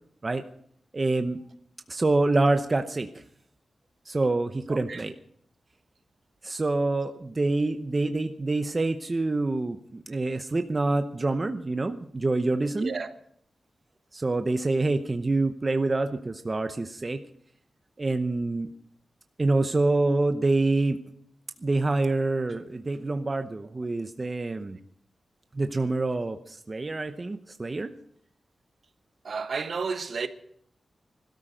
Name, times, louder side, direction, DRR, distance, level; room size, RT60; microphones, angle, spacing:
voice 1, 0.9-1.4 1.9-3.1 4.1-5.1 6.4-12.9 14.1-17.2 18.0-18.7 19.4-21.0 21.6-24.8 25.5-27.9, right 2 dB, 30° right, 0.8 m, -26 dB
voice 2, 4.7-5.0 12.8-13.1 29.2-30.3, right 5 dB, 60° right, 1.3 m, -32 dB
20.5 x 13.0 x 5.2 m
wide cardioid pair, 120°, 0 cm